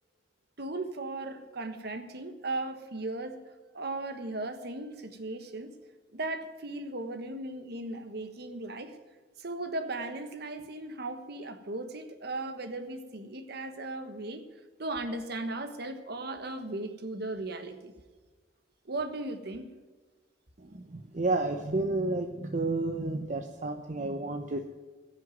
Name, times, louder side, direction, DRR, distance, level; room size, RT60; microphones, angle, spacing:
voice 1, 0.6-5.7 6.1-9.0 9.4-17.9 18.8-19.7, right 2 dB, 60° right, 8 dB, 1.4 m, -37 dB
voice 2, 20.6-24.7, right 2 dB, 45° right, 5 dB, 0.8 m, -31 dB
15.5 x 6.4 x 9.1 m, 1.3 s
head